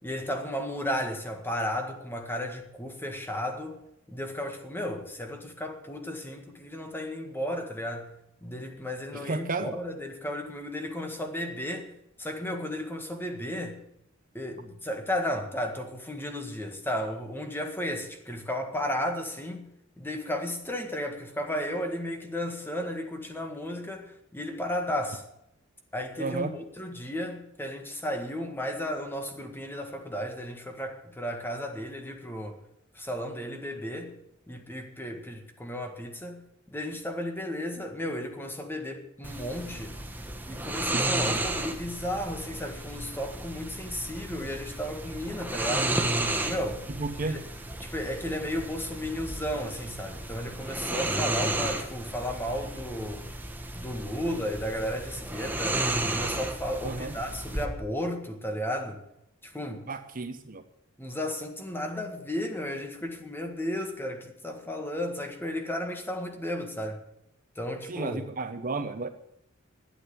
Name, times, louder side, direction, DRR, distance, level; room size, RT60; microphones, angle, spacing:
voice 1, 0.0-3.8 4.1-8.1 8.4-11.9 12.2-13.8 14.3-19.6 20.0-25.2 25.9-32.6 32.9-34.1 34.5-36.4 36.7-40.0 40.5-45.9 46.3-46.8 47.3-47.4 47.8-53.3 53.7-55.8 56.1-59.0 59.4-59.9 61.0-67.0 67.5-68.2, left 1 dB, 10° left, 1.7 m, -34 dB
voice 2, 9.1-9.8 26.2-26.5 40.9-41.0 47.0-47.4 56.8-57.1 59.9-60.6 67.9-69.1, right 3 dB, 40° right, 0.8 m, -32 dB
sound 1, 39.2-57.7, right 2 dB, 10° right, 1.2 m, -33 dB
12.0 x 8.8 x 8.6 m
head